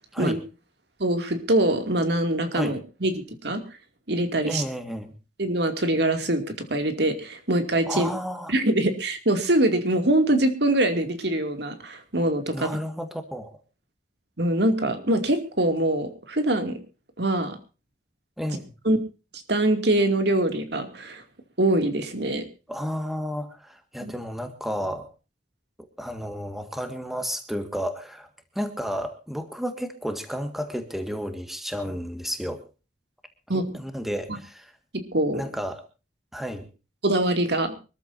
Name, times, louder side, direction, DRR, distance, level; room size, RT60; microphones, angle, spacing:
voice 1, 1.0-3.6 4.1-4.6 5.4-8.1 8.5-12.7 14.4-16.8 17.2-17.6 18.8-19.0 19.5-21.2 21.6-22.4 24.0-24.1 33.5-33.6 35.1-35.4 37.0-37.7, right 1 dB, 65° right, 7 dB, 2.6 m, -23 dB
voice 2, 4.4-5.1 7.9-8.5 12.5-13.5 18.4-18.7 22.7-25.1 26.0-28.3 28.6-32.6 33.5-34.7 35.3-35.8 36.3-36.7, equal, ahead, 8 dB, 1.8 m, -32 dB
24.5 x 14.0 x 2.7 m, 0.32 s
head